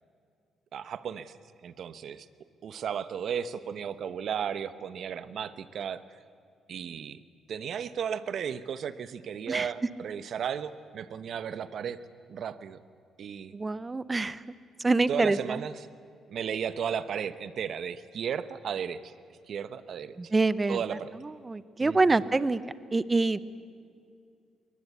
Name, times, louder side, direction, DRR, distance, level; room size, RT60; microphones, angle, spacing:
voice 1, 0.7-1.4 1.6-2.3 2.6-6.0 6.7-7.2 7.5-12.0 12.3-12.8 13.2-13.5 15.1-15.9 16.3-19.1 19.5-20.3 20.7-21.2 21.8-22.2, right 8 dB, 60° right, 14 dB, 1.0 m, -34 dB
voice 2, 13.5-14.4 14.8-15.4 20.3-20.8 21.5-22.6 22.9-23.4, right 3 dB, 25° right, 17 dB, 0.8 m, -25 dB
22.0 x 19.5 x 8.4 m, 2.3 s
cardioid pair, 90°, 0 cm